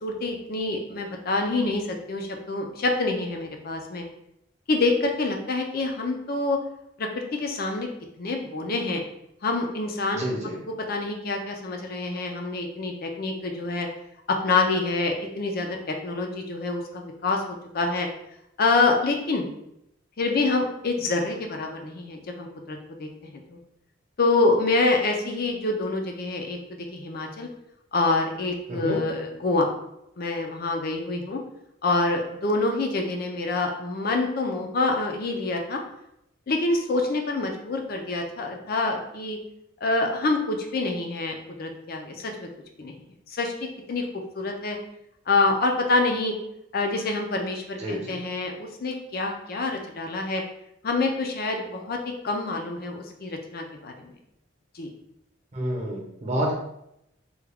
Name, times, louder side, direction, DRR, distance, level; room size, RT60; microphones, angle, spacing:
voice 1, 0.0-4.0 4.7-6.6 7.0-7.9 8.2-9.0 9.4-10.3 10.9-13.9 14.3-18.1 18.6-19.5 20.2-23.6 24.2-26.6 26.9-27.5 27.9-29.7 30.2-31.4 31.8-35.8 36.5-39.4 39.8-42.5 42.8-42.9 43.3-43.5 43.9-44.0 44.3-44.8 45.3-46.3 46.7-50.4 50.8-52.0 52.2-54.1 54.7-54.9, left 3 dB, 50° left, 3 dB, 0.5 m, -26 dB
voice 2, 10.1-10.6 28.7-29.0 47.8-48.2 55.5-56.5, equal, 35° right, -1 dB, 0.8 m, -29 dB
3.4 x 2.3 x 3.4 m, 0.80 s
head